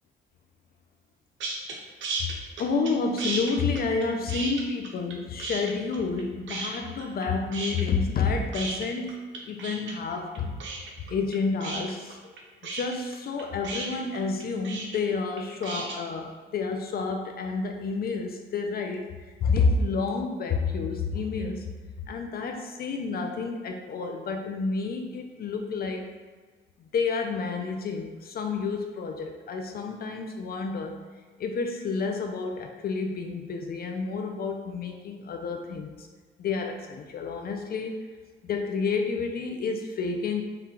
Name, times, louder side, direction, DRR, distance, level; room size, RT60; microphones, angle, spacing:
sound 1, 1.4-1.7 2.0-2.9 3.2-5.1 5.4-6.2 6.5-7.3 7.5-16.0, right 3 dB, 70° right, 0.8 m, -34 dB
voice 1, 2.6-12.3 12.6-21.7 22.1-26.1 26.8-31.0 31.4-36.1 36.4-38.0 38.4-40.4, left 4 dB, 50° left, 4 dB, 0.4 m, -30 dB
4.4 x 2.3 x 3.7 m, 1.4 s
cardioid pair, 90°, 20 cm